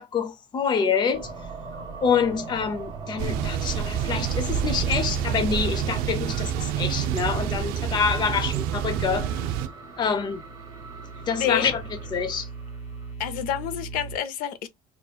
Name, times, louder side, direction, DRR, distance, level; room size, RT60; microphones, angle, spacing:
voice 1, 0.0-1.3 1.7-9.3 10.0-10.4 11.3-11.8 12.1-12.5, left 6 dB, 30° left, 0.6 m, -26 dB
sound 1, 1.1-13.1, right 3 dB, 25° right, 1.5 m, -40 dB
Thunder / Bicycle, 3.2-9.7, right 9 dB, 85° right, 0.5 m, -27 dB
sound 2, 9.7-14.2, right 4 dB, 45° left, 1.6 m, -40 dB
voice 2, 13.2-14.7, left 10 dB, 70° left, 0.7 m, -28 dB
5.0 x 2.9 x 2.3 m
cardioid pair, 150°, 15 cm